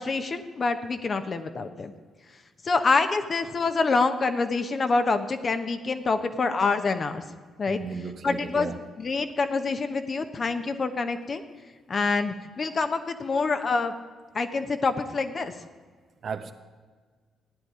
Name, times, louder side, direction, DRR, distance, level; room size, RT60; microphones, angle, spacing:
voice 1, 0.0-1.9 2.6-7.2 7.6-7.8 8.2-11.4 11.9-13.9 14.3-15.5, left 4 dB, 45° left, 8 dB, 1.1 m, -26 dB
voice 2, 7.7-8.8 16.2-16.5, right 5 dB, 55° right, 7 dB, 1.0 m, -35 dB
14.5 x 10.0 x 4.9 m, 1.5 s
hypercardioid pair, 45°, 0 cm